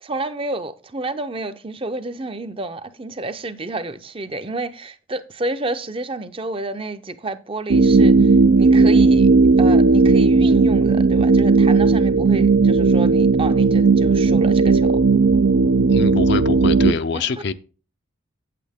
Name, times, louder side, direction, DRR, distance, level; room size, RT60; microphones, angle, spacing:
voice 1, 0.0-9.3 9.6-15.0 17.1-17.2, right 2 dB, 25° right, 0.5 m, -30 dB
sound 1, 7.7-16.9, right 4 dB, 85° right, 0.5 m, -15 dB
voice 2, 15.9-17.5, left 4 dB, 55° left, 0.5 m, -24 dB
8.6 x 8.4 x 3.5 m
head